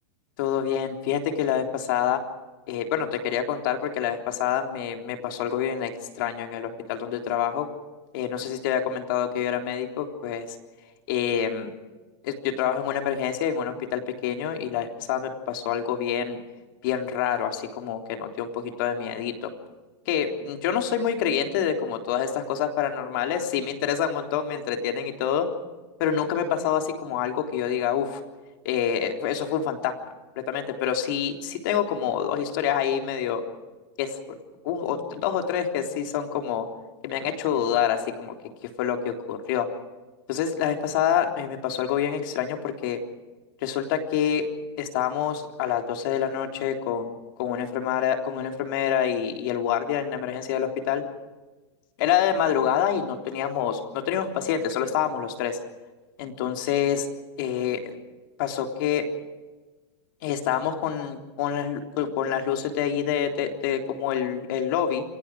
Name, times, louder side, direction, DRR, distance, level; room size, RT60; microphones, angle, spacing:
voice 1, 0.4-2.2 2.7-5.9 6.2-7.7 8.1-10.5 11.1-11.7 12.2-16.4 16.8-19.5 20.1-25.5 26.0-28.2 28.7-29.9 30.5-33.4 34.0-34.4 34.6-36.7 37.0-38.3 38.8-39.7 40.3-43.0 43.6-44.5 44.8-47.1 47.4-51.0 52.0-55.6 56.2-57.1 57.4-58.0 58.4-59.0 60.2-65.0, left 9 dB, 50° left, 4 dB, 3.6 m, -27 dB
28.5 x 23.5 x 4.9 m, 1.2 s
supercardioid pair, 165°, 14 cm